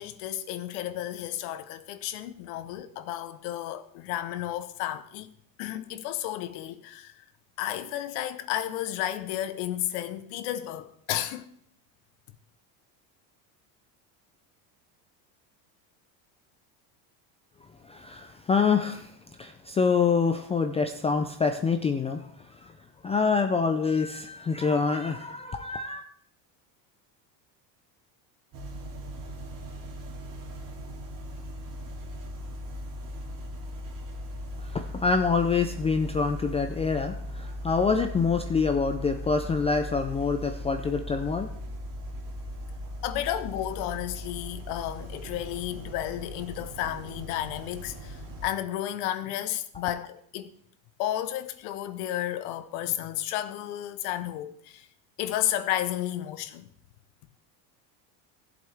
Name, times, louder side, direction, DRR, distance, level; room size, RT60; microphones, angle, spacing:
voice 1, 0.0-5.3 5.6-7.1 7.6-11.5 43.0-50.5 51.0-54.9 55.2-56.7, left 12 dB, 80° left, 1.0 m, -32 dB
voice 2, 17.8-22.7 23.0-26.0 34.6-41.5, left 5 dB, 15° left, 0.3 m, -26 dB
sound 1, 28.5-48.5, equal, 45° right, 2.4 m, -39 dB
16.0 x 7.8 x 3.4 m
cardioid pair, 130°, 44 cm